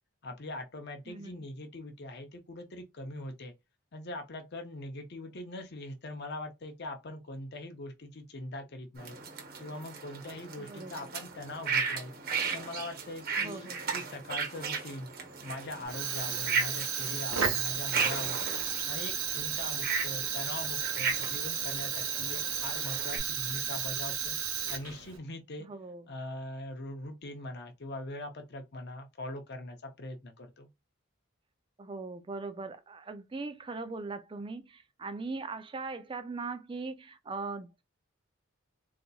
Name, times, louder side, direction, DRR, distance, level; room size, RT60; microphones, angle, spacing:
voice 1, 0.2-3.5 3.9-9.2 9.6-12.1 12.5-15.1 15.4-18.4 18.9-24.4 24.7-25.7 26.1-30.7, left 1 dB, 50° left, 0.6 m, -42 dB
sound 1, 9.0-23.2, right 5 dB, 45° right, 1.0 m, -36 dB
voice 2, 10.6-11.1 13.4-13.8 25.6-26.0 31.8-37.8, right 3 dB, 25° right, 0.3 m, -40 dB
Fire, 15.8-25.2, right 8 dB, 80° right, 1.0 m, -33 dB
3.9 x 2.8 x 2.3 m
head